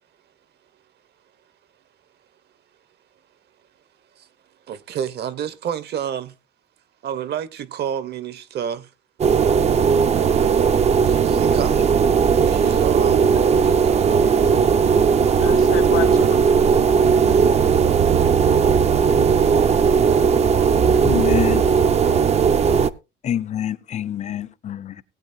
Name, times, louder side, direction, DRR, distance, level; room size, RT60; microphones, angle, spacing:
voice 1, 4.7-6.3 7.0-8.9 11.0-11.8 12.4-13.3 13.6-14.4 20.3-20.8, right 9 dB, 60° right, 0.9 m, -30 dB
sound 1, 9.2-22.9, right 6 dB, 35° right, 0.5 m, -17 dB
voice 2, 15.3-17.6, left 12 dB, 90° left, 1.2 m, -32 dB
voice 3, 21.0-21.8 23.2-25.0, left 10 dB, 35° left, 0.6 m, -26 dB
18.5 x 8.8 x 2.7 m
cardioid pair, 140°, 19 cm